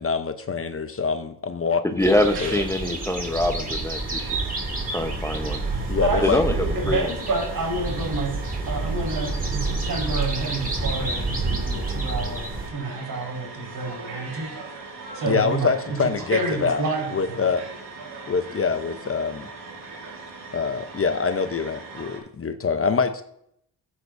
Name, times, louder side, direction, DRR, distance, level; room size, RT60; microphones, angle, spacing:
voice 1, 0.0-2.1 2.4-2.6 5.9-6.4 15.2-16.8 17.1-17.6 18.3-19.5 20.5-23.2, left 5 dB, 35° left, 9 dB, 0.8 m, -25 dB
voice 2, 2.0-4.4 4.9-5.6 6.2-7.0, left 1 dB, 5° left, 5 dB, 1.0 m, -24 dB
sound 1, 2.0-12.7, right 3 dB, 20° right, 2.4 m, -28 dB
sound 2, 2.3-22.2, right 3 dB, 80° right, 4.9 m, -40 dB
voice 3, 6.0-8.3 8.7-14.5 15.1-15.7 16.3-17.5, right 3 dB, 55° right, 1 dB, 4.9 m, -29 dB
15.5 x 8.4 x 2.7 m, 0.71 s
cardioid pair, 80°, 40 cm